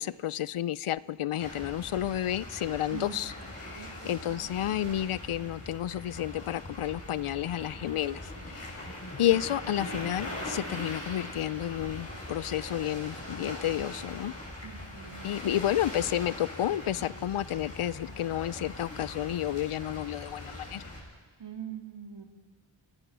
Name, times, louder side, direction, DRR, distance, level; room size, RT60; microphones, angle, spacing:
voice 1, 0.0-3.3 3.6-8.2 8.5-8.9 9.2-14.3 15.2-20.8, left 12 dB, 90° left, 19 dB, 0.6 m, -31 dB
sound 1, 1.4-21.0, left 1 dB, 30° left, 6.7 m, -41 dB
voice 2, 3.7-4.5 14.6-15.3 21.4-22.2, right 8 dB, 60° right, 5 dB, 2.3 m, -43 dB
28.0 x 18.0 x 6.2 m, 1.4 s
wide cardioid pair, 95°, 48 cm